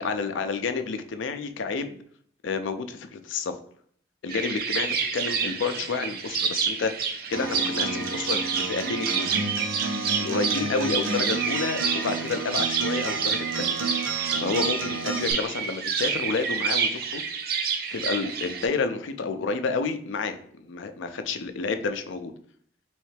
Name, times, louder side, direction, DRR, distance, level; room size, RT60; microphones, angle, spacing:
voice 1, 0.0-2.0 2.4-3.5 4.2-6.9 7.3-9.3 10.2-13.7 14.4-17.2 17.9-22.3, left 4 dB, 75° left, 8 dB, 0.4 m, -30 dB
sound 1, 4.3-18.7, right 6 dB, 50° right, 0.4 m, -29 dB
Acoustic guitar, 7.3-15.3, right 4 dB, 85° right, 0.7 m, -31 dB
3.2 x 3.1 x 3.2 m, 0.62 s
head